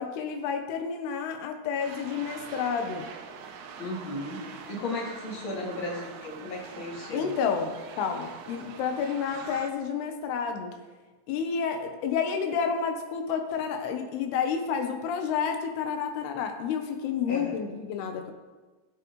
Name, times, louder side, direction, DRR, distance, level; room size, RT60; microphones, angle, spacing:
voice 1, 0.0-3.1 7.1-10.7 11.3-18.3, left 6 dB, 85° left, 5 dB, 3.0 m, -30 dB
sound 1, 1.8-9.7, right 6 dB, 80° right, 1.7 m, -44 dB
voice 2, 3.8-4.4 4.7-7.3 17.3-17.6, left 2 dB, 35° left, -3 dB, 2.6 m, -35 dB
19.0 x 7.2 x 3.1 m, 1.3 s
omnidirectional pair, 4.5 m